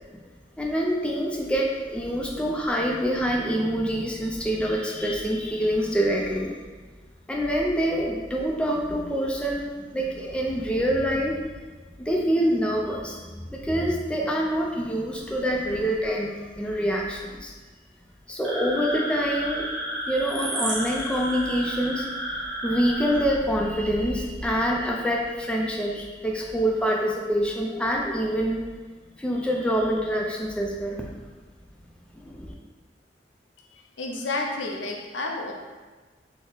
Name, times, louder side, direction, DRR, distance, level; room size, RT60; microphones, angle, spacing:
voice 1, 0.6-6.5 7.3-11.4 12.0-17.5 18.3-19.7 20.0-22.1 22.6-28.6 29.2-31.1 32.1-32.5, equal, 5° left, -2 dB, 0.3 m, -26 dB
sound 1, 18.4-23.2, equal, 90° right, 1.3 m, -32 dB
voice 2, 33.7-35.5, left 2 dB, 85° left, 1 dB, 0.5 m, -31 dB
3.7 x 2.0 x 3.8 m, 1.3 s
head